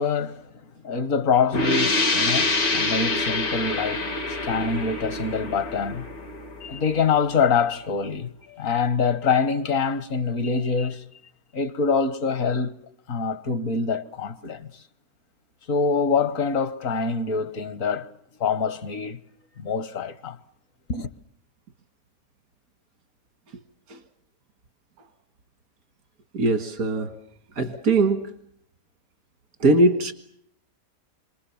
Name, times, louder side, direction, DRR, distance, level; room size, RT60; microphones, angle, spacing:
voice 1, 0.0-4.1 4.4-6.1 6.6-11.1 11.5-12.8 13.1-14.7 15.7-18.1 18.4-19.2 19.6-20.4 20.9-21.1, left 5 dB, 65° left, 1.6 m, -25 dB
sound 1, 1.5-7.0, left 2 dB, 80° left, 2.8 m, -26 dB
voice 2, 26.3-27.2 27.6-28.3 29.6-30.1, right 2 dB, 90° right, 2.1 m, -21 dB
28.0 x 25.5 x 7.2 m
omnidirectional pair, 1.5 m